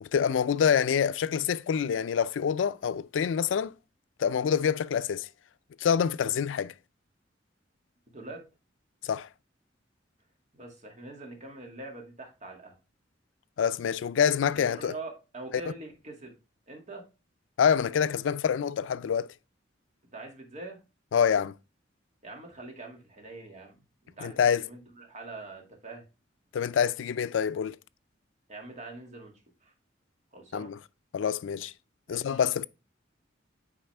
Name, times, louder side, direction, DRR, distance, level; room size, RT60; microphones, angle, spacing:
voice 1, 0.0-3.7 4.2-5.3 5.8-6.7 9.0-9.3 13.6-14.9 17.6-19.3 21.1-21.5 24.2-24.6 26.5-27.8 30.5-30.8 31.1-31.7 32.1-32.6, left 7 dB, 90° left, 0.4 m, -26 dB
voice 2, 8.1-8.4 10.5-12.8 14.4-16.4 16.7-17.0 20.1-20.8 22.2-26.0 28.5-29.3 29.6-29.7 30.3-30.7 32.1-32.4, right 2 dB, 40° right, 2.1 m, -44 dB
8.7 x 4.8 x 3.3 m
head